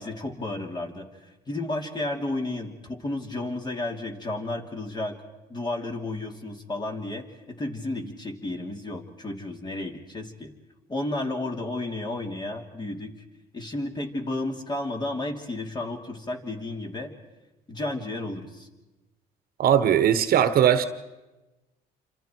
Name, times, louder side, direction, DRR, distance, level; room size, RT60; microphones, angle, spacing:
voice 1, 0.0-5.2 5.5-10.5 10.9-13.1 13.5-17.1 17.7-18.7, left 2 dB, 25° left, 3 dB, 3.0 m, -32 dB
voice 2, 19.6-20.8, right 9 dB, 60° right, 11 dB, 1.3 m, -19 dB
27.5 x 26.5 x 4.6 m, 1.1 s
cardioid pair, 110°, 17 cm